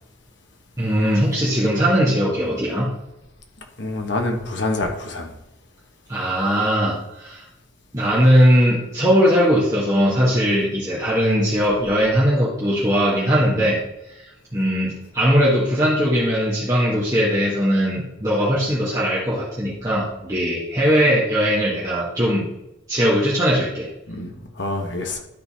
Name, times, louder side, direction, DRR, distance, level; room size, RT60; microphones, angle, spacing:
voice 1, 0.8-2.9 6.1-7.4 7.9-13.8 14.2-14.3 14.5-22.5 22.9-23.9, equal, 15° right, -8 dB, 1.7 m, -19 dB
voice 2, 3.8-5.3 13.5-13.7 24.1-25.2, left 2 dB, 60° left, 3 dB, 1.5 m, -26 dB
12.0 x 4.2 x 4.2 m, 0.90 s
head